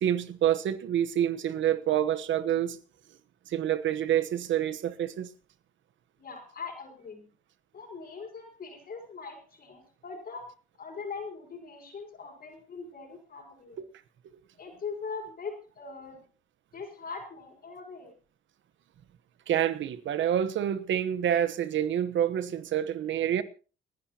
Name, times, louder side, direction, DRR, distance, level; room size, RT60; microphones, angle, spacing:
voice 1, 0.0-2.8 3.5-5.3 19.5-23.4, right 10 dB, 70° right, 1.1 m, -27 dB
voice 2, 6.2-7.2 7.7-10.5 10.8-13.8 14.6-16.2 16.7-18.1, left 5 dB, 50° left, 5.3 m, -41 dB
30.0 x 10.5 x 2.9 m
cardioid pair, 90°, 20 cm